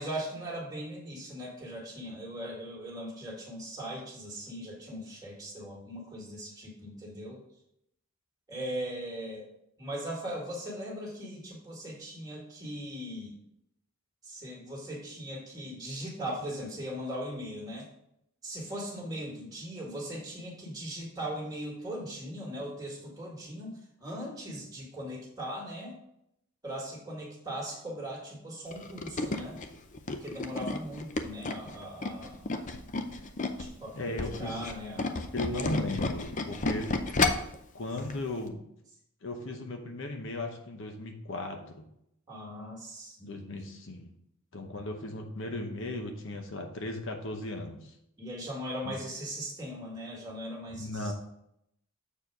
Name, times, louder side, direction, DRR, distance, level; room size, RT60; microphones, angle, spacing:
voice 1, 0.0-7.4 8.5-9.5 9.8-13.4 14.2-17.9 18.4-26.0 26.6-29.6 30.1-32.4 33.6-35.2 42.3-43.8 48.2-51.1, equal, 15° right, -3 dB, 2.0 m, -39 dB
Tools, 28.7-33.7 34.1-37.6 38.0-38.2 38.5-38.6, left 3 dB, 35° left, 0.5 m, -31 dB
voice 2, 33.9-34.6 35.3-36.9 37.7-38.7 39.2-41.8 43.2-44.1 44.5-47.9 48.8-49.0 50.8-51.1, left 1 dB, 60° left, 4 dB, 0.9 m, -36 dB
7.2 x 4.5 x 4.7 m, 0.76 s
head